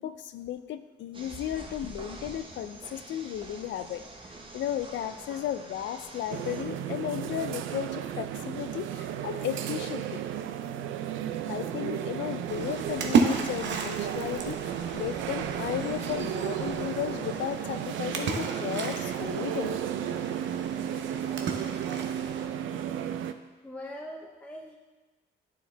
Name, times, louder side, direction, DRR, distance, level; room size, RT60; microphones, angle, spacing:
voice 1, 0.0-4.0 4.5-10.2 11.4-19.8, left 10 dB, 70° left, 11 dB, 0.4 m, -34 dB
sound 1, 1.1-6.6, right 2 dB, 25° right, 1.0 m, -45 dB
sound 2, 6.3-23.3, right 10 dB, 80° right, 0.4 m, -34 dB
Splash splatter, 12.5-22.4, right 5 dB, 65° right, 0.8 m, -33 dB
voice 2, 23.6-24.8, left 1 dB, 5° left, -1 dB, 0.6 m, -41 dB
9.2 x 4.7 x 3.3 m, 1.2 s
cardioid pair, 90°, 20 cm